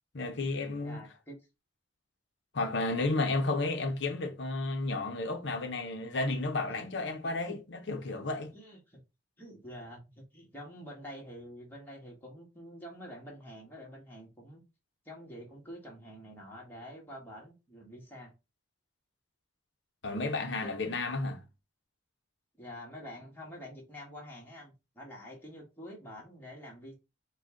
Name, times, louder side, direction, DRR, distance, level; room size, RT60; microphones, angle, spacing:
voice 1, 0.1-1.0 2.5-8.5 20.0-21.4, left 2 dB, 65° left, 0.8 m, -32 dB
voice 2, 0.8-1.4 6.8-6.9 7.5-7.6 8.5-9.0 9.4-14.6 15.0-18.3 20.6-20.8 22.6-26.9, equal, 10° left, 1.4 m, -47 dB
5.1 x 2.4 x 3.7 m
head